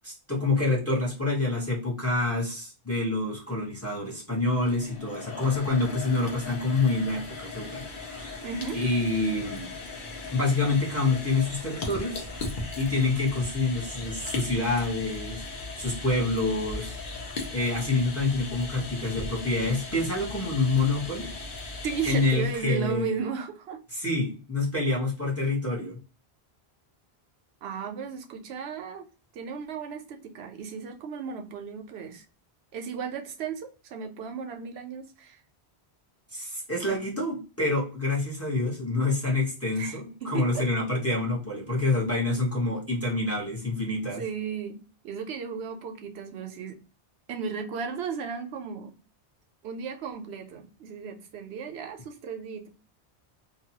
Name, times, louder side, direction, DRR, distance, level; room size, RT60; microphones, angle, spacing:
voice 1, 0.0-8.4 8.7-9.7 10.3-12.3 12.8-16.9 17.5-21.3 22.0-23.1 23.9-26.0 36.3-44.2, left 2 dB, 15° left, -3 dB, 0.8 m, -27 dB
sound 1, 4.4-22.7, left 3 dB, 55° left, 0.9 m, -38 dB
voice 2, 8.4-8.8 21.8-23.8 27.6-29.0 29.3-32.2 32.7-35.4 39.8-40.6 44.0-46.8 47.3-48.9 49.6-52.7, right 6 dB, 75° right, 5 dB, 0.9 m, -35 dB
2.7 x 2.2 x 2.8 m, 0.35 s
omnidirectional pair, 1.1 m